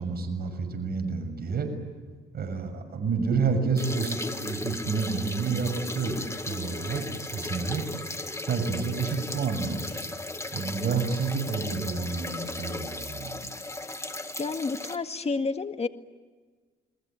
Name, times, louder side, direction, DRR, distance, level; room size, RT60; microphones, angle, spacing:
voice 1, 0.0-1.7 2.3-7.1 7.3-7.8 8.5-10.0 10.5-13.5, right 5 dB, 50° right, 5 dB, 6.6 m, -29 dB
sound 1, 3.8-15.0, left 2 dB, 15° left, 1.9 m, -36 dB
voice 2, 14.4-15.9, left 4 dB, 30° left, 8 dB, 1.8 m, -30 dB
30.0 x 21.5 x 9.0 m, 1.4 s
cardioid pair, 90°, 20 cm